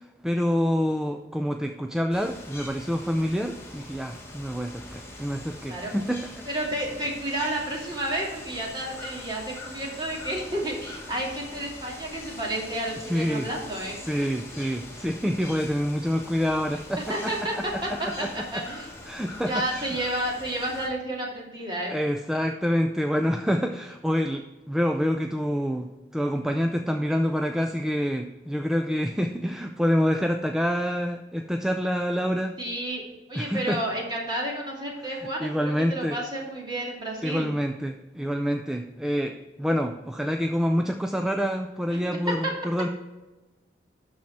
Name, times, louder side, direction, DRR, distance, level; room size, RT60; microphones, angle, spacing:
voice 1, 0.2-6.3 13.1-13.5 14.0-18.6 19.1-20.0 21.9-32.5 33.4-33.8 35.2-36.2 37.2-42.9, equal, 5° right, 4 dB, 0.4 m, -27 dB
sound 1, 2.1-20.9, left 2 dB, 15° left, 1.5 m, -43 dB
voice 2, 6.4-14.0 16.7-18.9 19.5-22.0 32.6-33.0 33.3-37.5 41.9-42.0, right 1 dB, 25° right, -3 dB, 2.5 m, -31 dB
12.5 x 4.2 x 4.6 m, 1.1 s
head